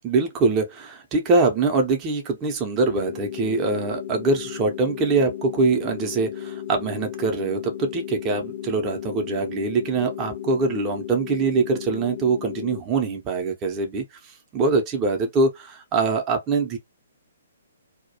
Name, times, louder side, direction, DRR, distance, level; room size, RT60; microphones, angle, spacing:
voice 1, 0.0-16.8, right 3 dB, 25° right, 0.5 m, -23 dB
sound 1, 2.8-12.8, left 11 dB, 55° left, 0.4 m, -35 dB
2.2 x 2.0 x 2.7 m
figure-of-eight pair, 125°, 0 cm